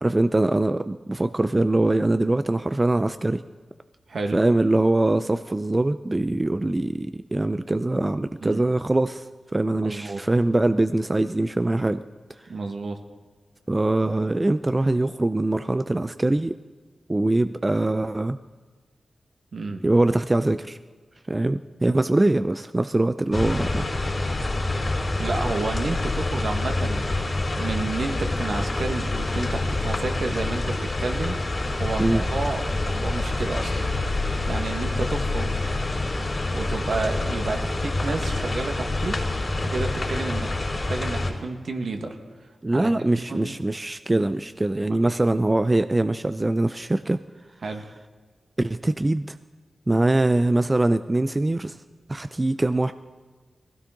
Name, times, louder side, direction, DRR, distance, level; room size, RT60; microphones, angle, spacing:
voice 1, 0.0-3.4 4.3-12.0 13.7-16.6 17.1-18.4 19.8-20.8 21.3-23.9 32.0-32.2 42.6-47.2 48.6-49.4 49.9-51.8 52.1-52.9, right 2 dB, 25° right, 11 dB, 0.4 m, -23 dB
voice 2, 9.8-10.2 12.5-13.0 19.5-19.8 25.2-27.0 27.6-31.4 31.8-33.9 34.5-35.5 36.5-39.2 39.6-42.1 42.7-43.5 44.1-44.3 44.8-45.2 47.6-47.8, right 3 dB, 70° right, 4 dB, 1.7 m, -30 dB
sound 1, 23.3-41.3, left 2 dB, 40° left, 4.0 m, -27 dB
19.5 x 16.0 x 3.9 m, 1.4 s
cardioid pair, 65°, 0 cm